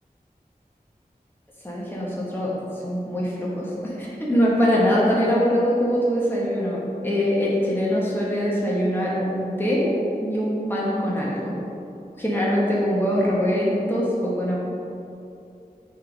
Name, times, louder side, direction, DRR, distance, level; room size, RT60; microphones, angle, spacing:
voice 1, 1.6-2.5 2.8-6.8 7.0-9.9 10.2-11.5 12.2-14.6, equal, 15° left, -6 dB, 1.3 m, -23 dB
6.4 x 3.4 x 5.4 m, 2.7 s
wide cardioid pair, 45°, 16 cm